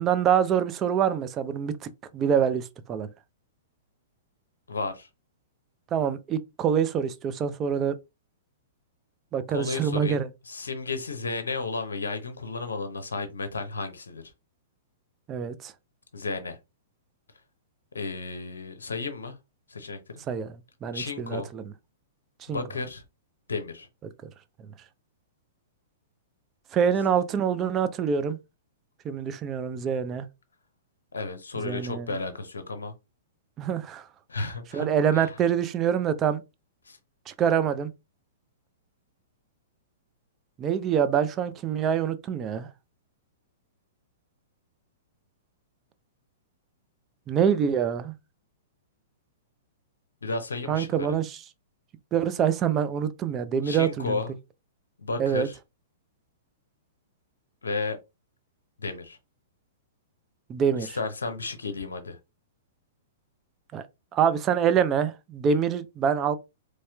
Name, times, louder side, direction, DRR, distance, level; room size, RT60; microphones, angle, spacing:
voice 1, 0.0-3.1 5.9-8.0 9.3-10.3 15.3-15.7 20.3-20.5 20.8-21.7 22.5-22.6 26.7-28.4 29.0-30.2 31.5-32.1 33.6-34.1 34.7-36.4 37.3-37.9 40.6-42.7 47.3-48.1 50.7-51.4 52.1-54.2 55.2-55.5 60.5-61.0 63.7-63.8 64.1-66.4, right 8 dB, 25° right, 0.5 m, -25 dB
voice 2, 4.7-5.1 9.5-14.2 16.1-16.6 17.9-19.4 19.7-20.0 20.9-21.5 22.5-23.0 23.5-23.9 31.1-32.9 34.3-34.9 35.1-35.3 36.9-37.0 50.2-51.1 53.6-54.3 55.0-55.6 57.6-58.0 58.8-59.2 60.8-62.2, left 3 dB, 75° left, 0.6 m, -33 dB
4.2 x 3.1 x 2.3 m
figure-of-eight pair, 110°, 0 cm